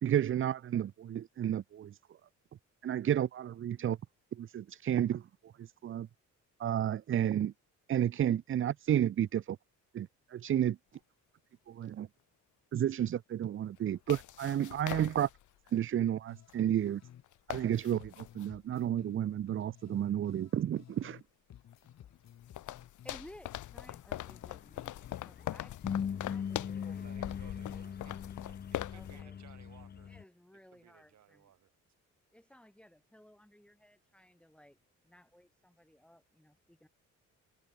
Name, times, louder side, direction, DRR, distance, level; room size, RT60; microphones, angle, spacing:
voice 1, 0.0-2.0 2.8-4.0 4.4-5.2 5.6-6.1 6.6-7.5 7.9-9.6 9.9-10.8 11.7-12.1 12.7-15.3 15.7-17.0 17.5-21.2, right 10 dB, 45° right, 0.6 m, -31 dB
sound 1, 10.9-11.0 13.8-15.7 16.5-16.6 16.9-17.0 17.2-18.5 21.0-21.1 21.7-29.2, left 14 dB, 80° left, 2.0 m, -42 dB
sound 2, 16.3-17.2 17.5-21.2 21.5-25.2 25.5-26.3, left 10 dB, 60° left, 1.9 m, -56 dB
voice 2, 23.0-25.7 26.2-27.0 28.9-29.4 30.0-31.5 32.3-34.8 35.0-36.9, equal, 5° left, 4.7 m, -58 dB
sound 3, 24.4-30.2, left 7 dB, 35° left, 0.7 m, -40 dB
voice 3, 27.0-28.2 28.4-30.1 30.7-31.7, right 10 dB, 65° right, 4.6 m, -60 dB
cardioid pair, 90°, 30 cm